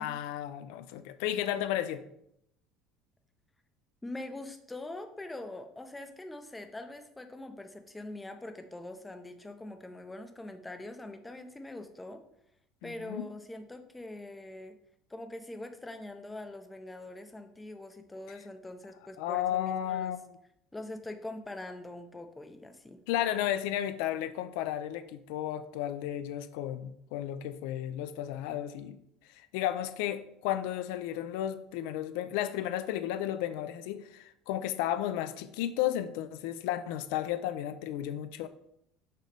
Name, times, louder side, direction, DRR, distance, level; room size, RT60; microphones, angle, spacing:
voice 1, 0.0-2.0 12.8-13.3 19.2-20.2 23.1-29.0 29.4-38.5, left 12 dB, 80° left, 11 dB, 0.4 m, -33 dB
voice 2, 4.0-12.2 12.8-14.8 15.1-20.1 20.7-23.0, left 2 dB, 10° left, 6 dB, 0.5 m, -43 dB
6.6 x 3.1 x 5.2 m, 0.76 s
cardioid pair, 160°, 0 cm